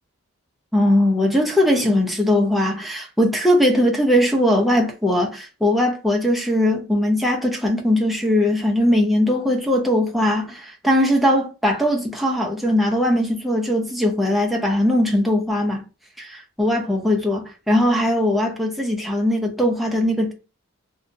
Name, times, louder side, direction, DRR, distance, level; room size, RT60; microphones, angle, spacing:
voice 1, 0.7-15.8 16.2-20.3, left 1 dB, ahead, 0.5 m, -20 dB
2.7 x 2.1 x 2.5 m
head